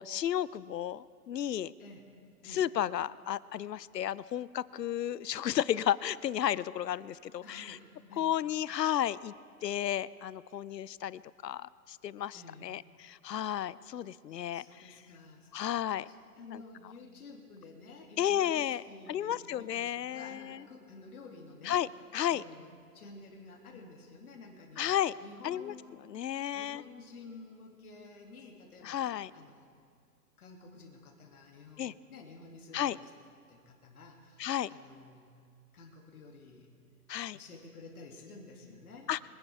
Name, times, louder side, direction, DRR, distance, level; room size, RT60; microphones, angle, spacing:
voice 1, 0.0-1.7 2.5-7.8 8.2-9.3 9.6-14.6 15.5-16.1 16.5-16.6 18.2-18.8 19.1-20.6 21.6-22.4 24.8-25.1 25.4-25.7 26.1-26.8 28.8-29.3 31.8-31.9 32.7-33.0 34.4-34.7 37.1-37.4 39.1-39.2, left 11 dB, 90° left, 20 dB, 0.6 m, -33 dB
voice 2, 7.4-8.3 12.3-12.7 14.4-15.5 16.1-21.8 22.3-24.9 25.2-25.9 26.5-29.8 30.4-33.0 33.5-35.3 35.7-36.7 37.3-39.1, left 3 dB, 65° left, 0 dB, 2.6 m, -51 dB
24.5 x 11.0 x 3.5 m, 2.2 s
hypercardioid pair, 145°, 48 cm